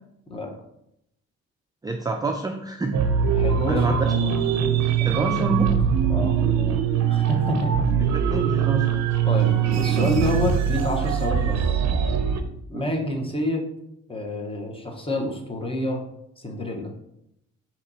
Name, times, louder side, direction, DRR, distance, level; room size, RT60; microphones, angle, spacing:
voice 1, 1.8-3.0 3.7-4.3 5.0-5.7 8.1-8.9 12.7-12.9, right 2 dB, 15° right, 3 dB, 0.4 m, -27 dB
sound 1, 2.9-12.4, right 8 dB, 60° right, 0.5 m, -22 dB
voice 2, 3.3-4.2 5.0-5.3 6.1-6.3 7.1-7.7 9.3-11.8 12.7-13.7 14.1-16.0 16.4-16.9, left 1 dB, 20° left, 2 dB, 1.0 m, -28 dB
4.1 x 3.0 x 4.1 m, 0.79 s
cardioid pair, 90°, 30 cm